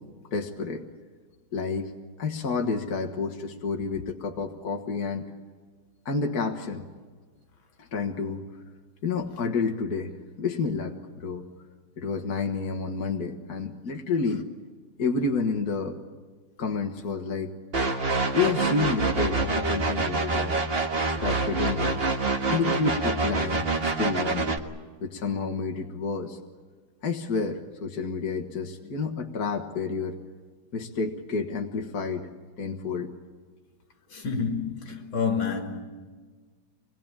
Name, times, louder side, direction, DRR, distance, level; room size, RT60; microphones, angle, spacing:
voice 1, 0.3-0.9 1.5-1.9 2.2-5.2 6.1-6.9 7.8-8.5 9.0-11.5 12.0-14.5 15.0-16.0 16.6-17.5 18.3-20.6 21.1-22.0 22.5-24.6 25.0-26.4 27.0-30.2 30.7-32.3 32.6-33.1, left 4 dB, 50° left, 2.0 m, -29 dB
sound 1, 17.7-24.6, right 3 dB, 30° right, 1.6 m, -26 dB
voice 2, 34.1-35.8, left 5 dB, 70° left, 3.2 m, -28 dB
26.0 x 20.5 x 8.9 m
omnidirectional pair, 2.2 m